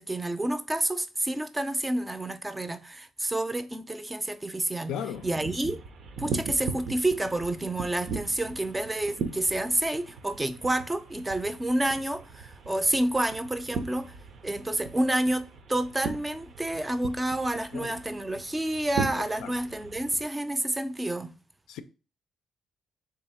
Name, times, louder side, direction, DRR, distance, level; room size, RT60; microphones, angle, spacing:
voice 1, 0.0-5.8 6.2-14.1 14.4-21.3, right 1 dB, 15° right, 0.4 m, -29 dB
voice 2, 4.9-5.2 17.7-17.9 19.4-19.5 21.7-21.8, left 8 dB, 90° left, 0.4 m, -35 dB
sound 1, 5.1-20.2, right 5 dB, 65° right, 0.6 m, -39 dB
3.6 x 2.8 x 4.3 m
cardioid pair, 90°, 0 cm